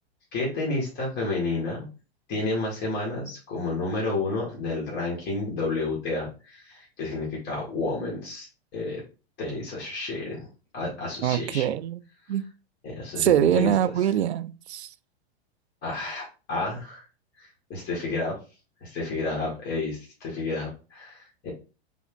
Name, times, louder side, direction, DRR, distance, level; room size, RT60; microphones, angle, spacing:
voice 1, 0.3-1.8 2.3-8.5 8.7-9.0 9.4-10.4 10.7-11.7 12.8-13.7 15.8-17.1 17.4-18.4 18.8-21.5, left 3 dB, 35° left, 2.1 m, -30 dB
voice 2, 11.2-12.0 12.3-12.4 13.2-14.9, right 11 dB, 85° right, 0.5 m, -23 dB
3.7 x 3.6 x 3.8 m
hypercardioid pair, 110°, 32 cm